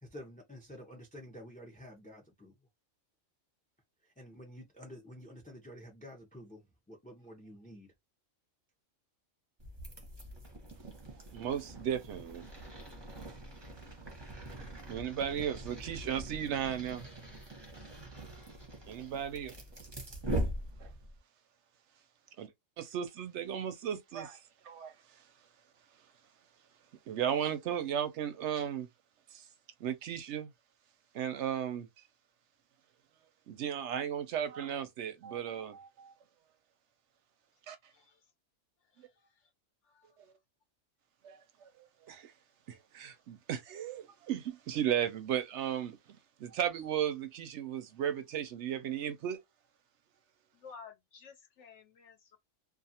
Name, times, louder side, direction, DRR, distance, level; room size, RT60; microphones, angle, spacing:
voice 1, 0.0-2.5 4.0-7.9, equal, 10° left, 0.4 m, -50 dB
sound 1, 9.6-21.2, right 1 dB, 25° right, 0.7 m, -42 dB
voice 2, 11.3-12.5 14.6-17.0 18.8-19.5 20.8-20.9 22.4-22.5 22.8-24.9 27.1-28.9 29.3-29.4 29.8-30.5 31.1-31.9 33.5-36.1 37.7-37.8 41.2-41.7 42.1-42.3 42.7-49.4, right 9 dB, 65° right, 0.8 m, -35 dB
voice 3, 37.9-38.3 38.8-39.5 39.8-40.2 50.5-52.4, left 5 dB, 65° left, 0.9 m, -54 dB
2.5 x 2.4 x 2.7 m
omnidirectional pair, 1.4 m